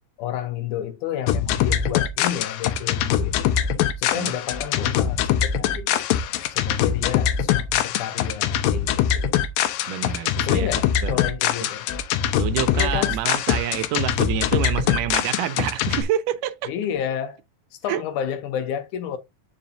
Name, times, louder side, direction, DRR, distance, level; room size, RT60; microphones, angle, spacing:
voice 1, 0.2-3.5 4.0-6.1 6.5-9.3 10.4-11.9 12.7-13.2 16.7-17.4 17.8-19.2, left 9 dB, 75° left, 2.1 m, -31 dB
sound 1, 1.3-16.0, left 9 dB, 90° left, 2.5 m, -23 dB
voice 2, 9.9-11.2 11.6-11.7 12.4-16.7 17.9-18.0, right 12 dB, 80° right, 2.1 m, -27 dB
8.5 x 5.2 x 2.6 m
omnidirectional pair, 3.9 m